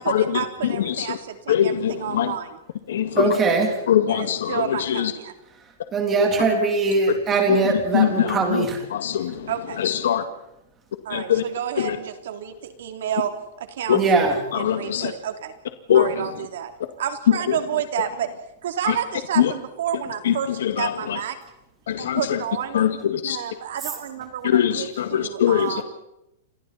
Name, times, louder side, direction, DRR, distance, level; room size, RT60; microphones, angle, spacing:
voice 1, 0.0-2.6 4.1-5.3 9.5-9.8 11.0-13.3 13.6-15.5 15.9-16.7 17.0-18.3 18.6-21.4 22.0-22.8 23.3-25.8, right 9 dB, 60° right, 6 dB, 3.0 m, -30 dB
voice 2, 0.8-1.2 1.5-2.3 2.9-3.3 3.9-5.1 7.5-7.6 7.9-8.7 8.9-9.5 9.8-10.2 11.1-11.4 11.8-12.0 13.9-14.0 14.6-15.1 15.9-16.1 19.4-19.5 20.3-20.4 20.6-21.2 21.9-22.4 22.7-23.4 24.4-25.8, left 10 dB, 70° left, 8 dB, 2.0 m, -22 dB
voice 3, 3.2-3.7 5.9-8.8 13.9-14.4, right 4 dB, 15° right, 3 dB, 3.4 m, -21 dB
30.0 x 26.0 x 4.3 m, 0.85 s
supercardioid pair, 180°, 0 cm